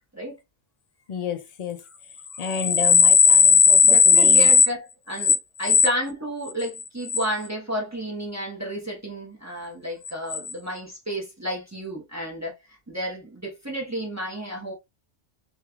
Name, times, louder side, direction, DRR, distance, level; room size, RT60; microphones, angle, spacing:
voice 1, 1.1-1.8 2.4-4.5, left 6 dB, 65° left, 0.4 m, -16 dB
voice 2, 3.8-14.7, equal, 15° right, 0.9 m, -32 dB
3.1 x 3.0 x 2.3 m
omnidirectional pair, 1.2 m